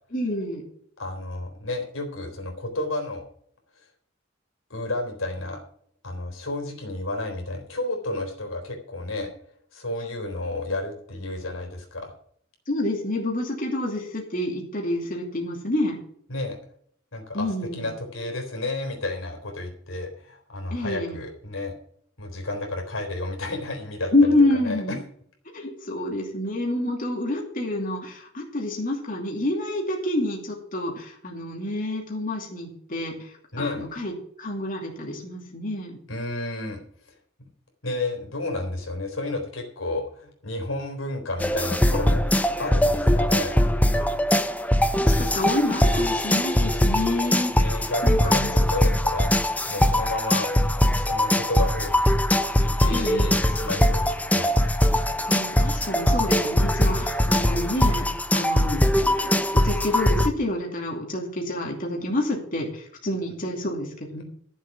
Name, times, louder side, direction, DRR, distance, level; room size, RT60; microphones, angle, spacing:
voice 1, 0.1-0.6 12.7-16.0 17.3-17.9 20.7-21.2 24.1-25.0 25.5-36.0 43.9-44.1 44.9-48.6 52.9-53.4 55.3-58.1 58.3-64.2, left 1 dB, 45° left, 0 dB, 2.7 m, -28 dB
voice 2, 1.0-3.2 4.7-5.6 6.0-9.3 9.7-12.1 16.3-16.6 17.1-21.7 22.2-24.1 24.6-25.0 33.5-33.9 36.1-36.8 37.1-37.2 37.8-43.6 47.5-50.5 51.0-52.1 52.6-54.5, left 2 dB, 90° left, 2 dB, 3.9 m, -31 dB
Funky - Upbeat Loop, 41.4-60.3, left 1 dB, 10° left, 0.7 m, -21 dB
13.0 x 7.3 x 6.1 m, 0.64 s
head